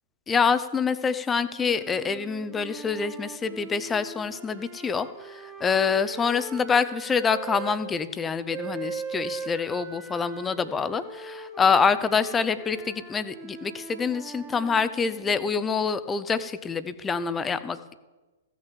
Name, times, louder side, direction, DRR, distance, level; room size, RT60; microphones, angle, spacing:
voice 1, 0.3-17.9, left 5 dB, 15° left, 13 dB, 0.6 m, -26 dB
sound 1, 1.5-7.8 8.5-15.6, right 5 dB, 20° right, 1.9 m, -41 dB
15.5 x 6.4 x 7.3 m, 1.2 s
figure-of-eight pair, 110°, 0 cm